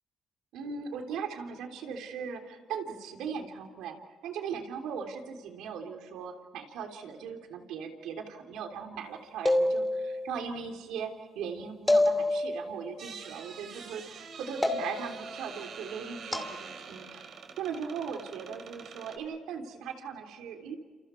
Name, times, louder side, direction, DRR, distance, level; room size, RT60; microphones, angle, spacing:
voice 1, 0.5-4.0 4.2-11.1 11.4-20.8, right 6 dB, 90° right, 4 dB, 3.4 m, -39 dB
sound 1, 9.5-10.3 11.9-12.8 14.6-15.3 16.3-16.5, left 1 dB, 10° left, 2.9 m, -27 dB
sound 2, 13.0-19.2, right 6 dB, 60° right, 4.1 m, -46 dB
30.0 x 28.0 x 4.6 m, 1.4 s
cardioid pair, 90°, 0 cm